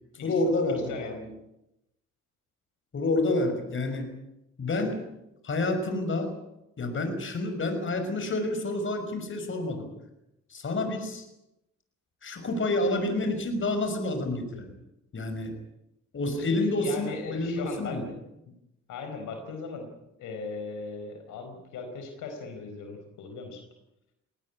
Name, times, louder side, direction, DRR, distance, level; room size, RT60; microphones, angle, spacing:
voice 1, 0.2-1.3 2.9-4.1 4.6-5.0 5.4-6.3 6.8-9.9 10.5-11.3 12.2-14.7 15.1-15.6 16.1-18.1, left 2 dB, 40° left, 7 dB, 5.9 m, -29 dB
voice 2, 16.4-18.2 18.9-23.6, left 4 dB, 80° left, 5 dB, 4.6 m, -38 dB
19.5 x 19.0 x 9.8 m, 0.87 s
cardioid pair, 90°, 30 cm